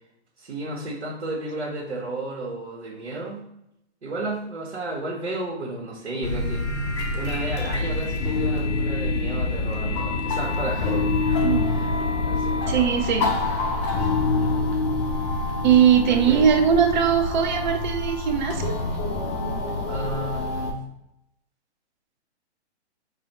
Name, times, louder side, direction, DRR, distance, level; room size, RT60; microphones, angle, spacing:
voice 1, 0.4-3.4 4.0-6.6 7.1-11.9 12.3-12.6 13.2-13.4 14.4-14.6 16.1-16.4 19.9-20.8, right 2 dB, 80° right, -5 dB, 1.5 m, -32 dB
sound 1, 6.2-20.7, left 3 dB, 25° left, 0.5 m, -26 dB
voice 2, 12.7-13.3 15.6-18.8, right 8 dB, 45° right, 5 dB, 0.7 m, -20 dB
4.1 x 2.4 x 4.2 m, 0.82 s
hypercardioid pair, 145°, 34 cm